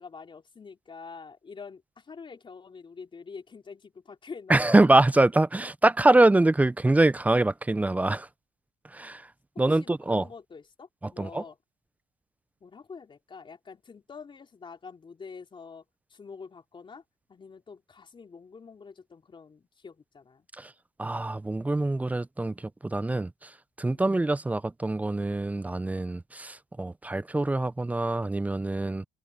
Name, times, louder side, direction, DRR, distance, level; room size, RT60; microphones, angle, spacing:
voice 1, 0.0-4.8 9.7-11.6 12.6-15.8 16.1-17.0 17.3-20.5 23.9-24.1, left 5 dB, 30° left, 3.7 m, -46 dB
voice 2, 4.5-8.3 8.9-9.2 9.6-10.2 11.0-11.4 20.6-20.7 21.0-22.5 22.8-23.3 23.8-29.0, right 2 dB, 10° right, 0.4 m, -24 dB
cardioid pair, 110°, 17 cm